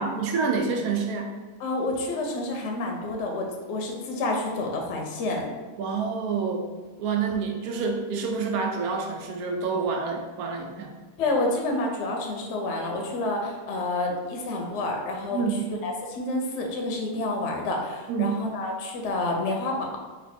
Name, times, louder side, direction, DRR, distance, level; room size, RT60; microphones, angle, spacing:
voice 1, 0.0-1.3 5.8-6.7 7.0-10.9 15.3-15.7 18.1-18.4, right 5 dB, 85° right, 3 dB, 1.1 m, -27 dB
voice 2, 1.6-5.5 11.2-15.4 15.8-20.0, left 2 dB, 65° left, 1 dB, 0.8 m, -29 dB
3.2 x 2.2 x 4.2 m, 1.3 s
omnidirectional pair, 1.5 m